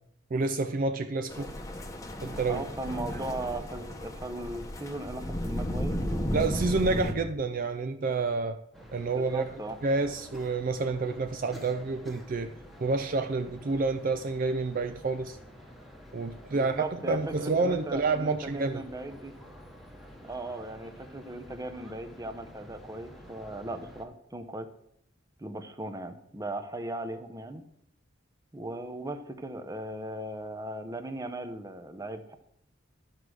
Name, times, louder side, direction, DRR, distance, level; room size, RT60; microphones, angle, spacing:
voice 1, 0.3-1.5 2.2-2.6 6.3-8.6 8.9-9.4 9.8-12.5 12.8-15.4 16.1-18.8, right 3 dB, 45° right, 8 dB, 0.4 m, -29 dB
sound 1, 1.3-7.1, equal, 15° left, 0.9 m, -34 dB
voice 2, 2.5-6.0 9.1-9.8 16.5-19.3 20.2-24.7 25.4-27.6 28.5-32.4, right 1 dB, 20° right, 8 dB, 0.7 m, -38 dB
sound 2, 8.7-24.0, equal, ahead, 1.2 m, -49 dB
12.0 x 4.8 x 6.3 m, 0.77 s
head